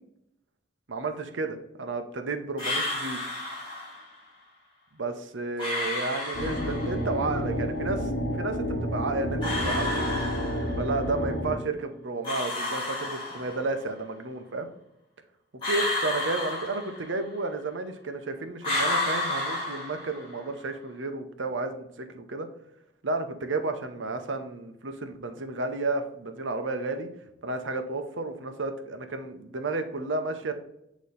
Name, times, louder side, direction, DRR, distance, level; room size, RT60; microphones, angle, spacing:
voice 1, 0.9-3.2 4.9-10.1 10.8-14.7 15.7-22.5 23.0-27.1 27.4-30.5, right 3 dB, 90° right, 7 dB, 0.8 m, -32 dB
sound 1, 2.6-4.1 5.6-7.1 9.4-11.0 12.2-13.8 15.6-17.4 18.6-20.5, left 2 dB, 25° left, 2.2 m, -31 dB
sound 2, 6.3-11.6, equal, 60° left, 1.2 m, -30 dB
8.4 x 3.0 x 4.0 m, 0.81 s
head